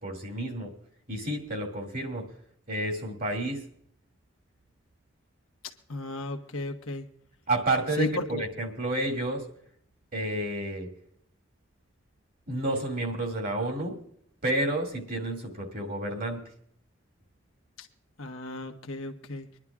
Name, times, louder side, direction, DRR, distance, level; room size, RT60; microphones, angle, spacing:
voice 1, 0.0-0.7 1.1-2.2 2.7-3.6 7.5-9.4 10.1-10.9 12.5-14.0 14.4-16.4, right 1 dB, 45° right, 1 dB, 2.2 m, -30 dB
voice 2, 5.9-7.0 8.0-8.4 17.8-17.9 18.2-19.5, left 1 dB, 85° left, 5 dB, 1.2 m, -34 dB
25.0 x 11.0 x 2.4 m, 0.66 s
head